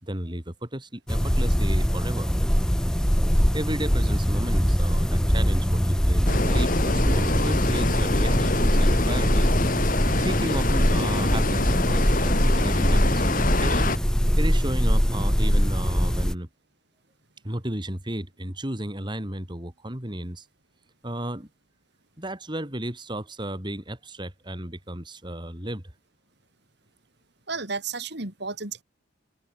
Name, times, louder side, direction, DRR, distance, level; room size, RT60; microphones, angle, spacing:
voice 1, 0.0-2.3 3.5-9.6 10.2-13.9 14.4-16.5 17.4-20.5 21.0-21.5 22.2-25.8, right 1 dB, 25° right, 3.3 m, -33 dB
sound 1, 1.1-16.3, equal, 5° left, 1.1 m, -22 dB
sound 2, 6.3-14.0, left 2 dB, 45° left, 2.8 m, -26 dB
voice 2, 27.5-28.8, right 4 dB, 60° right, 4.2 m, -32 dB
open air
head